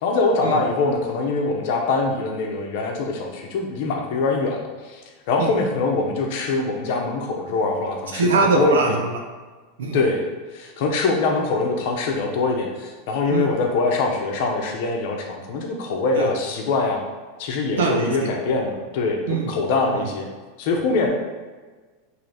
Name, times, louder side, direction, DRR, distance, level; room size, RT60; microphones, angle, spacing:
voice 1, 0.0-4.6 4.9-5.0 5.3-9.0 9.9-10.2 10.5-17.0 17.4-20.3 20.6-21.1, left 3 dB, 65° left, 1 dB, 0.7 m, -23 dB
voice 2, 8.1-9.2 9.8-10.0 13.3-13.5 16.2-16.3 17.8-18.3 19.3-19.5, right 4 dB, 85° right, 2 dB, 0.6 m, -22 dB
3.3 x 2.7 x 4.1 m, 1.4 s
hypercardioid pair, 115°, 0 cm